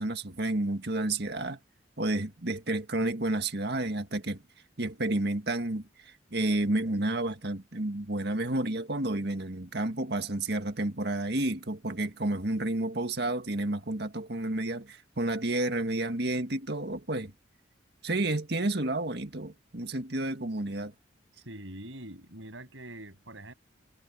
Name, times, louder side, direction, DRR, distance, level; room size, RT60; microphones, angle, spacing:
voice 1, 0.0-1.6 2.0-4.4 4.8-17.3 18.0-20.9, right 2 dB, 60° right, 1.9 m, -30 dB
voice 2, 21.5-23.5, right 1 dB, 80° right, 7.5 m, -44 dB
head